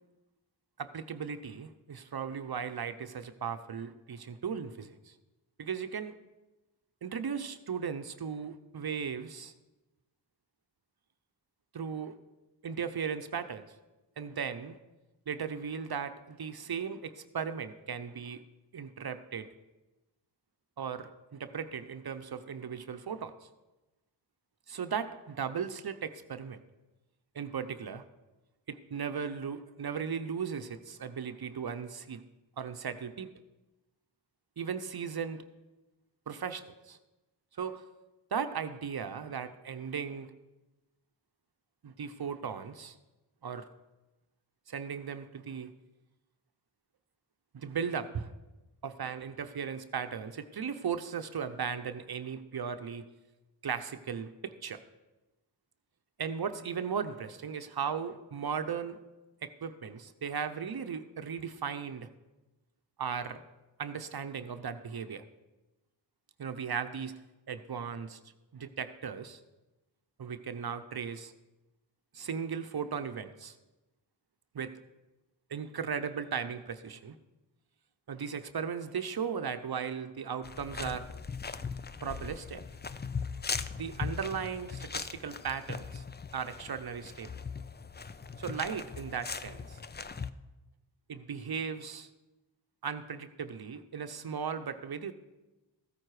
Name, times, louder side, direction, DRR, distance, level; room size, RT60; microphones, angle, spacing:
voice 1, 0.8-5.1 5.6-6.1 7.0-9.5 11.7-12.1 12.6-13.7 14.2-14.8 15.3-18.4 18.7-19.5 20.8-23.3 24.7-26.6 27.3-28.0 28.7-32.2 32.6-33.3 34.6-35.4 36.3-37.0 37.6-37.8 38.3-40.3 41.8-43.0 43.4-43.7 44.7-45.7 47.5-48.3 48.8-53.0 53.6-54.8 56.2-59.0 59.4-62.1 63.0-63.4 63.8-65.2 66.4-67.2 67.5-68.2 68.5-69.4 70.2-71.3 72.1-73.6 74.5-74.7 75.5-77.2 78.1-81.1 82.0-82.6 83.8-86.0 86.3-87.3 88.4-89.8 91.1-92.1 92.8-95.1, right 6 dB, 50° right, 9 dB, 0.8 m, -37 dB
sound 1, 80.4-90.3, left 5 dB, 20° left, 0.5 m, -39 dB
14.5 x 9.0 x 4.9 m, 1.1 s
cardioid pair, 50°, 47 cm